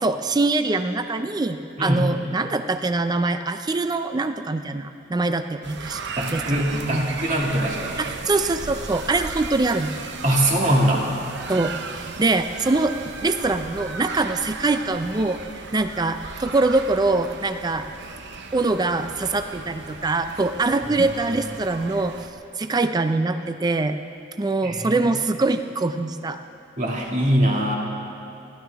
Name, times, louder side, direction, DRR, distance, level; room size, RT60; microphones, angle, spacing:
voice 1, 0.0-6.0 6.3-7.1 8.0-10.1 11.5-11.7 12.2-15.4 15.7-17.9 18.5-22.1 22.6-24.0 24.4-26.4, right 3 dB, 20° right, 9 dB, 0.4 m, -23 dB
sound 1, 5.6-22.3, right 4 dB, 60° right, 0.8 m, -36 dB
voice 2, 6.2-8.0 10.2-11.0 24.6-24.9 26.8-27.8, right 1 dB, 40° right, -2 dB, 2.1 m, -22 dB
29.0 x 12.0 x 3.4 m, 2.7 s
head